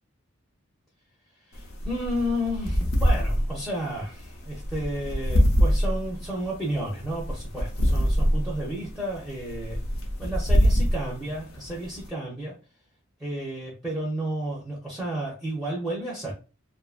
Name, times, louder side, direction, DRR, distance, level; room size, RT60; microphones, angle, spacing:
sound 1, 1.5-12.1, equal, 80° left, 0.7 m, -25 dB
voice 1, 1.5-9.8 10.2-12.5 13.2-16.3, equal, ahead, -4 dB, 0.5 m, -32 dB
2.6 x 2.5 x 2.3 m, 0.33 s
head